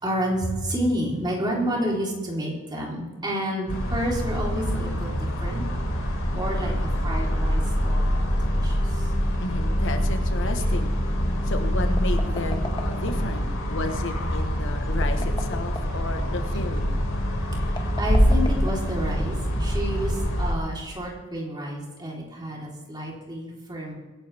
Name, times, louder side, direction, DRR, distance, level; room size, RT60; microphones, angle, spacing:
voice 1, 0.0-5.7 6.3-6.7 7.0-9.1 17.5-23.9, equal, 20° right, -3 dB, 3.8 m, -30 dB
sound 1, 3.7-20.5, equal, 80° left, 3.6 m, -25 dB
voice 2, 6.5-6.8 9.4-10.9 11.4-17.0, left 2 dB, 60° left, 6 dB, 1.3 m, -33 dB
sound 2, 12.0-13.4 14.9-16.1 17.7-19.2, left 2 dB, 20° left, 1.4 m, -37 dB
23.5 x 11.5 x 3.5 m, 1.2 s
head